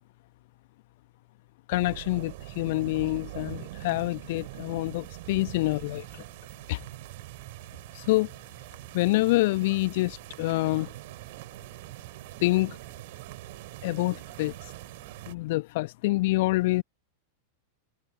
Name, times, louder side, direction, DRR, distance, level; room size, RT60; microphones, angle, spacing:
voice 1, 1.7-6.0 6.7-6.8 7.9-8.3 8.9-10.9 12.4-12.8 13.8-14.5 15.3-16.8, left 20 dB, 50° left, 1.1 m, -26 dB
sound 1, 1.7-15.3, right 20 dB, 50° right, 3.3 m, -43 dB
figure-of-eight pair, 90°, 0 cm